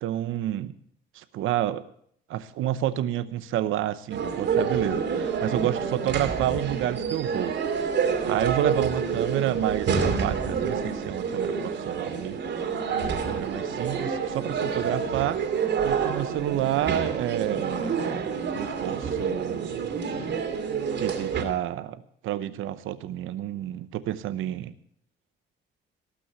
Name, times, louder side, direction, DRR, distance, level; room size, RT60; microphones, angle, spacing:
voice 1, 0.0-0.7 1.1-1.8 2.3-7.5 8.0-12.4 13.2-15.4 15.8-18.3 18.5-19.9 21.0-22.0 22.2-24.8, right 12 dB, 90° right, 13 dB, 0.9 m, -29 dB
sound 1, 4.1-21.4, right 6 dB, 65° right, 2.5 m, -28 dB
18.5 x 6.2 x 8.1 m, 0.67 s
cardioid pair, 90°, 20 cm